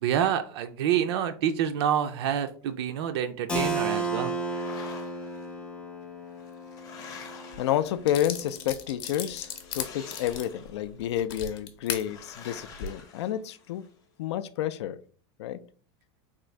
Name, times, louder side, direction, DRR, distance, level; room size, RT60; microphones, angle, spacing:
voice 1, 0.0-4.3, right 9 dB, 70° right, 0.4 m, -27 dB
Keyboard (musical), 3.5-9.0, right 2 dB, 5° left, 0.4 m, -34 dB
sound 1, 4.2-5.5 6.3-8.4 9.5-10.9 12.0-13.9, left 5 dB, 30° left, 0.8 m, -48 dB
sound 2, 7.5-7.6 8.1-12.0 12.6-12.9, left 8 dB, 60° left, 0.7 m, -36 dB
voice 2, 7.6-13.8 14.2-15.0 15.4-15.6, left 11 dB, 85° left, 0.4 m, -30 dB
3.6 x 2.6 x 3.1 m
supercardioid pair, 160°, 14 cm